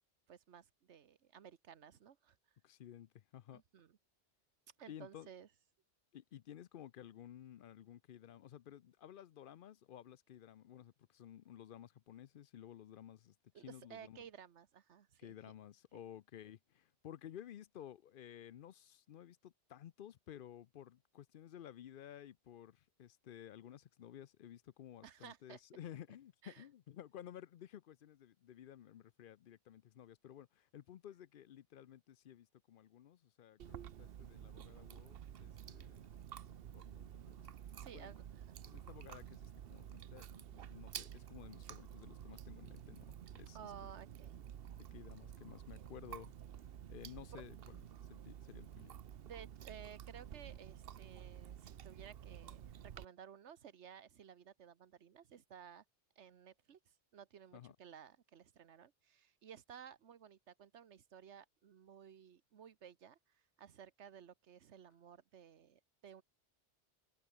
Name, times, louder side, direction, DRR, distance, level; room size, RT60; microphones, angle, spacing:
voice 1, 0.3-2.6 3.5-4.0 4.8-5.5 13.5-15.3 15.9-16.0 25.0-25.6 26.4-26.7 37.8-38.6 43.5-44.4 45.8-45.9 47.3-47.4 49.2-55.8 56.2-66.2, right 8 dB, 85° right, 1.3 m, -56 dB
voice 2, 2.6-3.6 4.9-5.3 6.1-13.3 13.6-14.2 15.2-36.1 36.7-37.5 37.9-38.1 38.7-43.7 44.8-46.3 46.9-47.8 48.1-48.9 57.5-57.8, left 10 dB, 60° left, 0.6 m, -54 dB
Chewing mastication, 33.6-53.0, right 9 dB, 60° right, 0.9 m, -51 dB
omnidirectional pair, 1.1 m